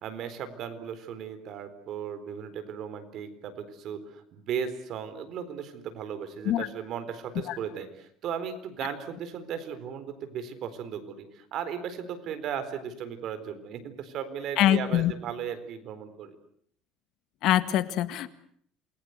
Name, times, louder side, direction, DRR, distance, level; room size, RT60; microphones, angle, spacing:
voice 1, 0.0-16.4, right 8 dB, 50° right, 10 dB, 4.1 m, -36 dB
voice 2, 14.6-15.1 17.4-18.3, left 13 dB, 60° left, 12 dB, 1.8 m, -24 dB
28.0 x 21.0 x 8.0 m, 0.65 s
cardioid pair, 150°, 0 cm